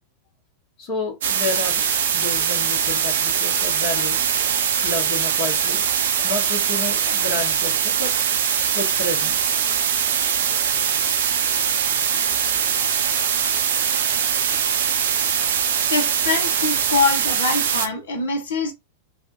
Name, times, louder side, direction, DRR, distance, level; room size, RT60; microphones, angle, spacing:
voice 1, 0.8-1.9 2.1-5.9 6.2-8.1 8.7-9.6 10.5-10.6 12.8-12.9 14.8-14.9, left 2 dB, 40° left, 1.3 m, -31 dB
sound 1, 1.2-17.9, right 8 dB, 60° right, 0.6 m, -22 dB
voice 2, 15.9-18.7, left 4 dB, 60° left, 0.9 m, -24 dB
2.8 x 2.3 x 3.0 m
figure-of-eight pair, 90°, 0 cm